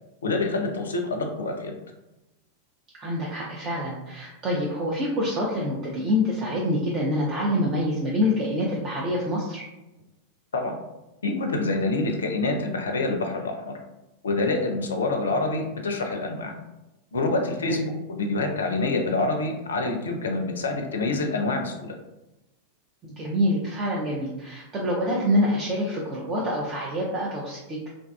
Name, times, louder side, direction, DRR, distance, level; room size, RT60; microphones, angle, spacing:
voice 1, 0.2-1.8 10.5-10.8 11.2-13.8 14.2-16.5 17.1-17.8 18.1-21.9, left 2 dB, 70° left, 4 dB, 0.4 m, -26 dB
voice 2, 3.0-9.6 17.7-17.9 23.0-27.9, left 1 dB, 30° right, -4 dB, 0.4 m, -26 dB
2.5 x 2.3 x 2.3 m, 0.98 s
figure-of-eight pair, 90°, 0 cm